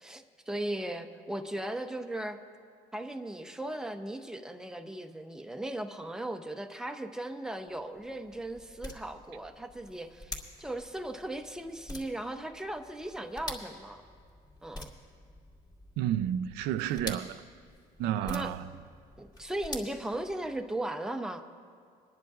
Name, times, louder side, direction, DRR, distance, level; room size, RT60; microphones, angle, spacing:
voice 1, 0.0-2.4 2.9-14.0 14.6-14.9 18.2-18.5 19.2-21.4, right 1 dB, 5° right, 0.7 m, -37 dB
sound 1, 7.6-20.8, left 1 dB, 25° left, 2.4 m, -47 dB
voice 2, 16.0-17.4 18.0-18.6, right 11 dB, 90° right, 0.4 m, -31 dB
28.0 x 10.5 x 2.4 m
cardioid pair, 110°, 17 cm